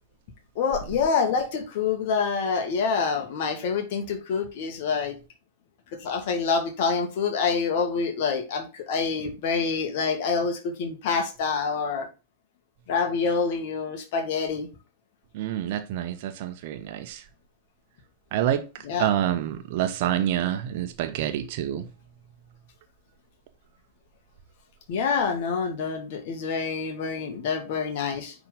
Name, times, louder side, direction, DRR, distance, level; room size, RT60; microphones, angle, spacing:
voice 1, 0.6-5.1 6.0-12.1 12.9-14.7 18.8-19.1 24.9-28.3, left 5 dB, 50° left, 2.0 m, -26 dB
voice 2, 15.3-17.2 18.3-18.6 19.0-21.8, right 11 dB, 50° right, 1.0 m, -27 dB
9.8 x 4.0 x 3.7 m
figure-of-eight pair, 95°, 0 cm